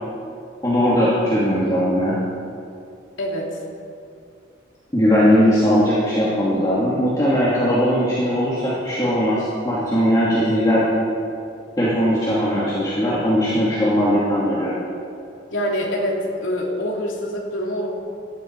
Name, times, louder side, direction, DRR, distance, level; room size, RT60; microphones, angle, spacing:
voice 1, 0.6-2.1 4.9-10.8 11.8-14.8, equal, 20° left, -9 dB, 2.6 m, -19 dB
voice 2, 3.2-3.6 15.5-17.9, equal, 80° left, -2 dB, 3.0 m, -25 dB
18.5 x 13.5 x 4.8 m, 2.5 s
head